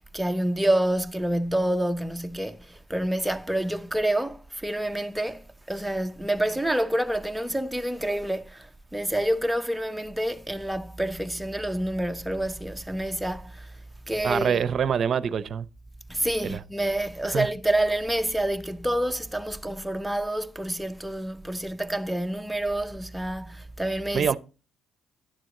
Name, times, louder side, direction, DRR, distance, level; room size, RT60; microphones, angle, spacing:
voice 1, 0.0-13.8 14.1-14.6 16.1-24.4, right 1 dB, 5° right, 0.6 m, -28 dB
voice 2, 14.2-15.7 16.4-16.6 17.2-17.5 24.1-24.4, right 7 dB, 50° right, 0.6 m, -25 dB
10.5 x 7.6 x 3.8 m
cardioid pair, 85°, 0 cm